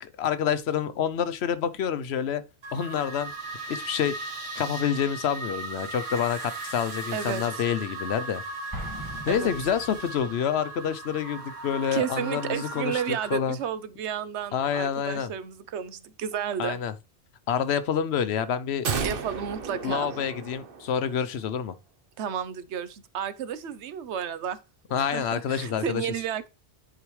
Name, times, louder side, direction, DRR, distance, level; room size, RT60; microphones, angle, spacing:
voice 1, 0.0-2.4 2.7-3.3 3.7-4.2 4.6-8.4 9.3-13.6 14.5-15.3 16.6-16.9 17.5-18.9 19.8-21.7 24.9-26.1, left 8 dB, 75° left, 0.9 m, -28 dB
sound 1, 2.6-13.4, right 2 dB, 75° right, 1.6 m, -37 dB
voice 2, 7.1-7.6 9.3-9.5 11.9-16.8 19.0-20.1 22.2-24.6 25.0-26.5, right 8 dB, 90° right, 1.0 m, -32 dB
Explosion, 8.7-10.4, equal, 20° right, 1.8 m, -40 dB
sound 2, 18.8-21.2 21.5-21.6, right 5 dB, 55° right, 1.1 m, -33 dB
10.0 x 4.8 x 3.1 m
omnidirectional pair, 1.1 m